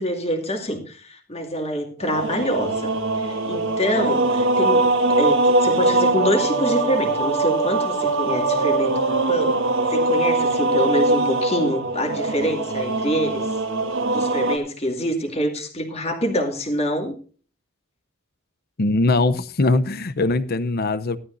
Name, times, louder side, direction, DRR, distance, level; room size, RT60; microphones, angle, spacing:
voice 1, 0.0-9.6 9.9-13.6 14.1-17.2, equal, 30° left, 2 dB, 2.5 m, -26 dB
sound 1, 2.0-14.6, right 2 dB, 65° right, 1.8 m, -21 dB
voice 2, 18.8-21.2, left 2 dB, 45° left, 14 dB, 0.8 m, -21 dB
15.5 x 12.5 x 2.7 m, 0.40 s
head